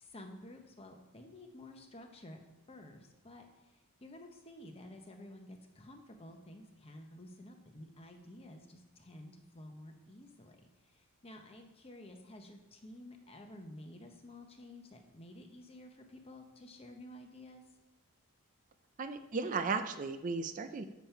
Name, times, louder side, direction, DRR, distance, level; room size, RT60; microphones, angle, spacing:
voice 1, 0.0-2.4 2.7-17.6, left 1 dB, 25° left, 4 dB, 0.8 m, -52 dB
voice 2, 19.0-20.8, right 4 dB, 35° right, 8 dB, 0.4 m, -35 dB
7.3 x 7.2 x 4.5 m, 1.1 s
head